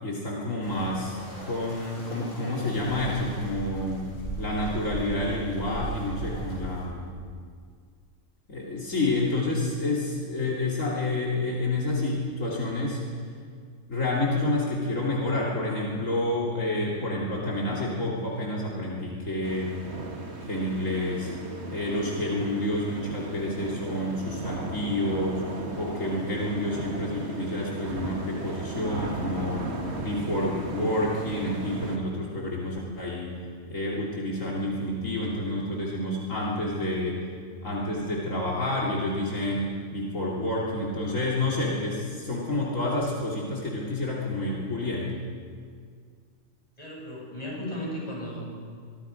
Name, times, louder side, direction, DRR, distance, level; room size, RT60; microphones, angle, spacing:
voice 1, 0.0-1.2 1.5-4.0 4.4-7.1 8.5-13.0 13.9-19.7 20.5-21.3 21.7-29.6 30.0-33.3 33.7-37.2 37.6-45.1, left 1 dB, 75° left, -5 dB, 3.3 m, -29 dB
sound 1, 0.6-6.8, right 2 dB, 45° left, 7.3 m, -38 dB
sound 2, 19.4-32.0, right 2 dB, 55° right, 2.2 m, -36 dB
voice 2, 46.8-48.6, equal, 30° left, -4 dB, 7.9 m, -35 dB
25.0 x 23.5 x 5.2 m, 2.1 s
omnidirectional pair, 1.4 m